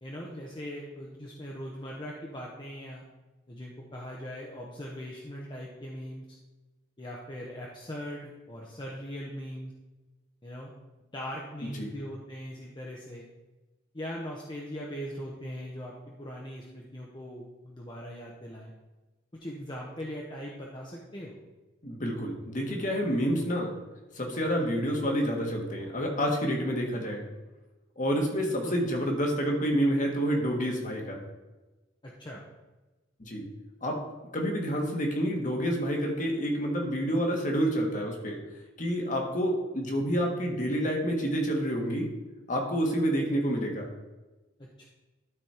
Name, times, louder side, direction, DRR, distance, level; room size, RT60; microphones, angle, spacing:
voice 1, 0.0-3.0 3.5-6.2 7.0-9.7 10.4-10.7 11.1-13.3 13.9-15.9 16.2-18.7 19.4-21.4 28.6-28.7 32.0-32.4 44.6-44.9, equal, 25° left, -3 dB, 0.9 m, -40 dB
voice 2, 21.8-23.7 24.1-27.2 28.0-31.2 33.2-33.4 33.8-34.0 34.3-38.4 38.8-42.1 42.5-43.9, equal, 40° left, 1 dB, 1.5 m, -28 dB
12.0 x 4.1 x 4.4 m, 1.1 s
head